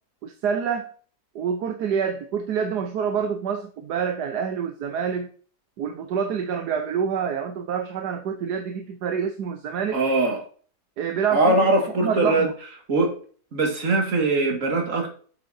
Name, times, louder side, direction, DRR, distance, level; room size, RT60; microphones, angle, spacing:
voice 1, 0.2-0.9 1.3-5.3 5.8-10.0 11.0-11.7 12.0-12.5, right 7 dB, 80° right, 1.4 m, -27 dB
voice 2, 9.9-10.4 11.3-12.5 12.9-13.1 13.5-15.1, right 2 dB, 50° right, 2.4 m, -21 dB
8.4 x 7.6 x 2.7 m
omnidirectional pair, 1.7 m